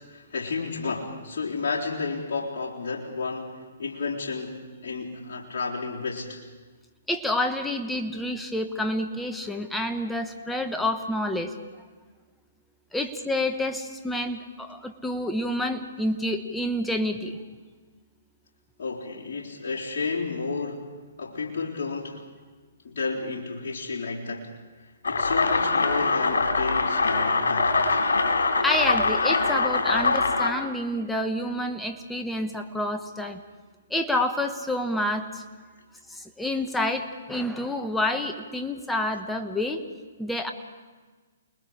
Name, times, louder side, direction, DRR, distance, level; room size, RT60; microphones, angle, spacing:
voice 1, 0.0-3.5 3.8-6.4 18.8-20.8 21.2-22.2 22.8-24.5 25.1-28.0, left 4 dB, 55° left, -5 dB, 3.9 m, -32 dB
voice 2, 7.1-11.5 12.9-17.4 28.6-33.4 33.9-35.4 36.1-39.8 40.2-40.5, left 1 dB, 5° left, 5 dB, 1.3 m, -28 dB
sound 1, 25.0-30.5, left 3 dB, 75° left, 3.8 m, -23 dB
29.0 x 21.0 x 5.0 m, 1.4 s
hypercardioid pair, 130°, 0 cm